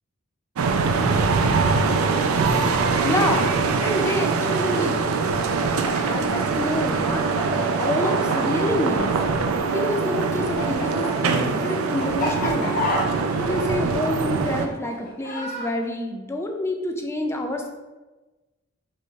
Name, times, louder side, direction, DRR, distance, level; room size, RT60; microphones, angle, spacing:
sound 1, 0.6-14.7, right 4 dB, 80° right, 0.4 m, -23 dB
voice 1, 2.9-3.5 3.8-5.1 6.0-7.2 7.8-9.1 9.7-12.9 13.4-17.7, left 1 dB, 10° left, 3 dB, 0.4 m, -27 dB
Chicken rooster, 5.4-9.8 10.0-15.7, left 2 dB, 40° left, 1.3 m, -30 dB
4.3 x 3.4 x 3.1 m, 1.2 s
head